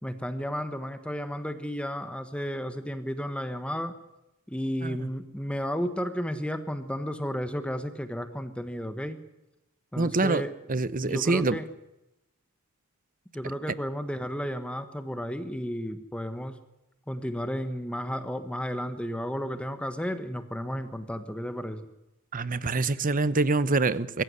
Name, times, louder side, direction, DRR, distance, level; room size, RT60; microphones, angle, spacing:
voice 1, 0.0-4.0 4.5-9.2 9.9-10.5 11.0-11.7 13.3-16.6 17.1-21.9, equal, 5° left, 1.2 m, -33 dB
voice 2, 10.0-10.4 10.7-11.6 22.3-24.2, right 3 dB, 40° right, 0.9 m, -25 dB
23.5 x 15.0 x 9.7 m
head